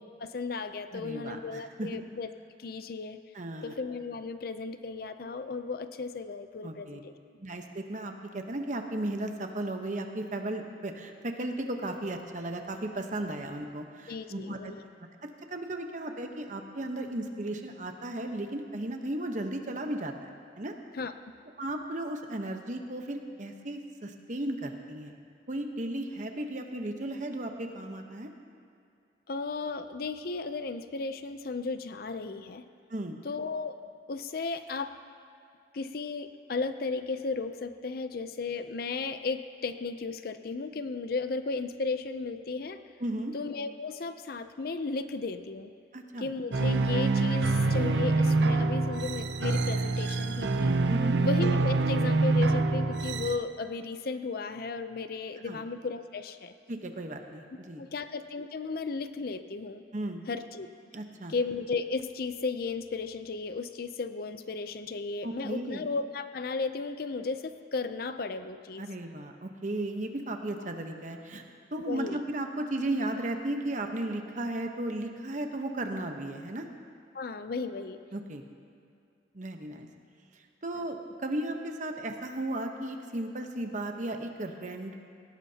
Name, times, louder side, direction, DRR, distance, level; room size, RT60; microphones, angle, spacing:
voice 1, 0.2-2.3 2.6-3.2 3.6-7.1 14.1-14.8 20.9-21.1 29.3-32.6 33.2-33.8 34.1-35.0 35.7-42.8 43.3-45.7 46.2-50.7 51.2-56.5 57.8-59.8 60.3-60.7 61.3-68.8 71.9-72.2 77.1-78.0 80.8-80.9, left 4 dB, 55° left, 10 dB, 0.5 m, -35 dB
voice 2, 0.9-2.0 3.3-3.7 6.6-7.0 7.4-14.7 15.2-20.1 20.6-20.7 21.6-25.1 25.5-28.3 32.9-33.2 43.0-43.3 45.9-46.3 50.9-51.2 55.4-55.6 56.7-57.8 59.9-60.2 60.9-61.3 65.2-65.8 68.8-71.4 71.7-76.7 78.1-78.4 79.3-79.9 80.6-84.9, right 1 dB, 45° right, 4 dB, 1.0 m, -35 dB
sound 1, 46.5-53.4, right 3 dB, 75° right, 0.6 m, -26 dB
18.0 x 17.5 x 2.9 m, 2.4 s
head